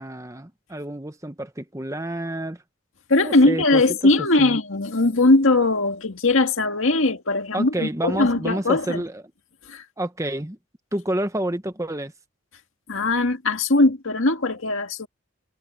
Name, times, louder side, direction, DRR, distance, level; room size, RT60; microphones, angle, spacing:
voice 1, 0.0-2.6 3.2-3.8 4.4-4.6 7.5-9.2 10.0-10.6 10.9-12.1, right 1 dB, 15° right, 1.1 m, -29 dB
voice 2, 3.1-9.0 9.7-9.8 12.9-15.1, left 2 dB, 70° left, 2.0 m, -20 dB
head